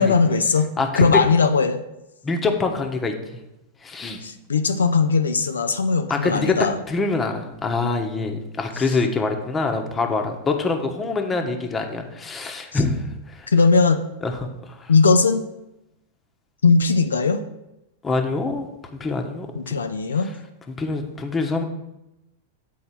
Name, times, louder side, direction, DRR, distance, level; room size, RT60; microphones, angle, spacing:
voice 1, 0.0-1.8 4.2-6.8 8.7-8.8 12.7-12.8 13.5-14.0 14.9-15.5 16.6-17.4 19.5-20.3, left 4 dB, 85° left, 8 dB, 0.5 m, -19 dB
voice 2, 0.8-1.2 2.2-3.1 3.8-4.2 6.1-6.5 6.9-13.5 14.2-14.9 18.0-18.7 18.9-19.5 20.7-21.6, left 3 dB, 20° left, 4 dB, 1.2 m, -25 dB
8.3 x 4.2 x 5.8 m, 0.91 s
hypercardioid pair, 100°, 0 cm